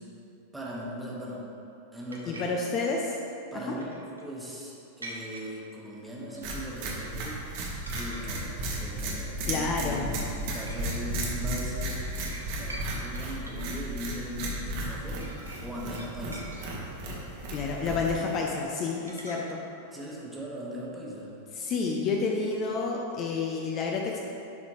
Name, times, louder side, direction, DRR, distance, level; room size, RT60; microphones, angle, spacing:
voice 1, 0.5-1.4 1.9-2.6 3.5-7.6 7.9-15.3 15.6-16.9 19.9-21.4, equal, 5° right, -5 dB, 1.3 m, -39 dB
sound 1, 2.1-2.4 3.8-4.2 5.0-5.5 6.3-6.8 7.1-7.4 7.9-8.3 8.6-8.9 9.4-9.9 10.7-10.8 11.3-12.9 13.1-13.7 14.7-14.9 15.2-17.1 19.1-19.4, right 1 dB, 80° right, 0.9 m, -45 dB
voice 2, 2.3-3.2 3.7-3.8 9.5-10.0 16.2-16.3 17.5-19.6 21.6-24.2, left 4 dB, 35° left, 0 dB, 0.5 m, -29 dB
sound 2, 6.4-18.4, right 1 dB, 50° right, 1.2 m, -34 dB
10.5 x 4.2 x 3.1 m, 2.8 s
figure-of-eight pair, 90°, 0 cm